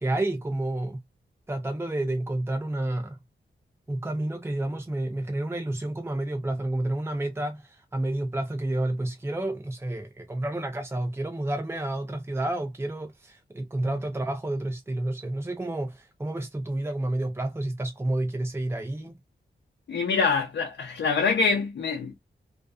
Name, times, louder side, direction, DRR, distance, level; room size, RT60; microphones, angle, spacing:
voice 1, 0.0-1.0 1.5-3.2 3.9-19.2, right 1 dB, 15° right, 0.7 m, -30 dB
voice 2, 19.9-22.1, left 5 dB, 80° left, 0.7 m, -25 dB
2.4 x 2.4 x 2.3 m
cardioid pair, 55°, 19 cm